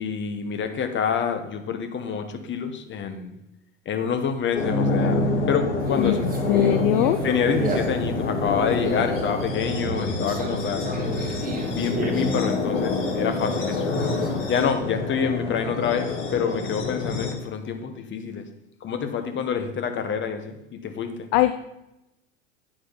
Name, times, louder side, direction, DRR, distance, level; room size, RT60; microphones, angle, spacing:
voice 1, 0.0-3.3 3.9-5.2 5.5-6.3 7.2-11.0 11.7-13.8 14.5-18.4 18.8-20.5 20.8-21.1, left 6 dB, 30° left, 7 dB, 1.2 m, -27 dB
sound 1, 4.5-17.3, left 2 dB, 65° left, 2.7 m, -27 dB
Conversation, 5.8-14.6, right 2 dB, 25° right, 1.8 m, -35 dB
voice 2, 6.0-7.2 21.3-21.5, left 14 dB, 50° left, 10 dB, 0.5 m, -21 dB
8.9 x 4.8 x 5.6 m, 0.88 s
hypercardioid pair, 85°, 38 cm